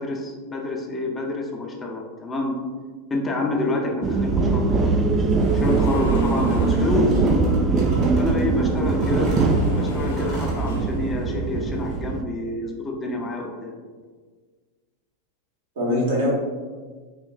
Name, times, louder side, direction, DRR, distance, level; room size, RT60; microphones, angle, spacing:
voice 1, 0.0-2.5 3.1-4.8 5.5-7.2 8.2-9.3 9.8-13.7, left 2 dB, 20° left, 0 dB, 0.6 m, -28 dB
sound 1, 4.0-12.2, right 3 dB, 25° right, 0.3 m, -21 dB
sound 2, 5.1-7.7 8.4-11.2 11.6-12.0, left 3 dB, 80° left, 0.8 m, -40 dB
sound 3, 5.9-6.8 7.1-8.4 8.9-10.6, right 1 dB, 45° right, 1.4 m, -42 dB
voice 2, 8.7-9.1 15.7-16.3, left 1 dB, 70° right, -4 dB, 1.3 m, -24 dB
4.3 x 3.0 x 2.3 m, 1.5 s
hypercardioid pair, 95°, 0 cm